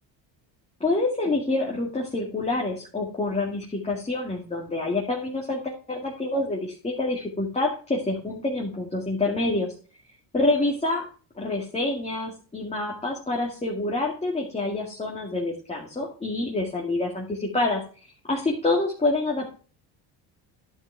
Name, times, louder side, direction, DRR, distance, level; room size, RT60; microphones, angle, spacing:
voice 1, 0.8-9.7 10.3-11.0 11.4-19.5, left 2 dB, 15° left, -2 dB, 2.2 m, -27 dB
10.5 x 7.3 x 3.5 m, 0.38 s
cardioid pair, 105°, 43 cm